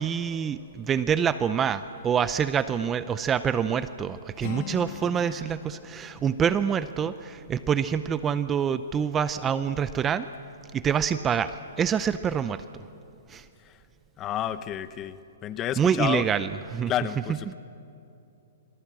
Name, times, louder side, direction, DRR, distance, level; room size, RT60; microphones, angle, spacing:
voice 1, 0.0-10.3 10.7-12.6 13.3-13.4 15.8-16.9 17.5-17.6, right 7 dB, 15° right, 13 dB, 0.5 m, -26 dB
Acoustic guitar, 4.4-8.3, left 12 dB, 50° left, 1.4 m, -43 dB
voice 2, 14.2-16.2 16.9-17.5, left 11 dB, 20° left, 13 dB, 0.9 m, -30 dB
29.0 x 26.5 x 7.6 m, 2.7 s
hypercardioid pair, 160°, 0 cm